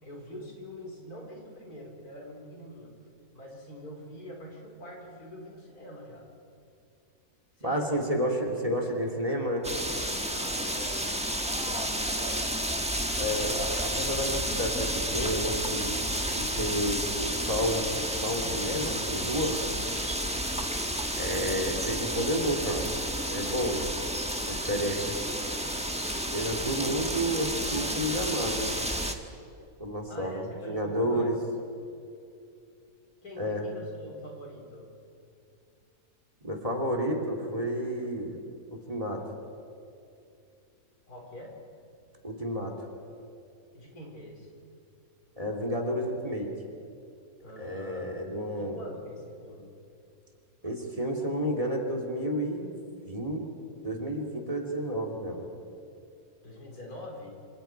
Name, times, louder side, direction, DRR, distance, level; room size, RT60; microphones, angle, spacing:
voice 1, 0.0-2.9 3.3-6.3 7.6-8.8 10.3-12.6 19.6-19.8 20.3-20.6 30.1-31.4 33.2-34.9 41.1-41.6 43.7-44.5 47.4-48.1 48.5-49.7 56.4-57.4, equal, 90° left, -1 dB, 4.8 m, -45 dB
voice 2, 7.6-9.7 13.2-15.9 16.3-19.6 21.2-22.9 23.3-23.8 24.4-25.1 26.3-28.7 29.8-31.3 33.4-33.6 36.4-38.4 38.9-39.2 42.2-42.7 45.4-46.5 47.6-48.8 50.6-52.7 53.0-53.4 53.8-55.5, equal, 25° right, 2 dB, 2.6 m, -31 dB
sound 1, 9.6-29.1, right 1 dB, 5° right, 1.1 m, -31 dB
27.0 x 26.5 x 4.6 m, 2.4 s
omnidirectional pair, 1.6 m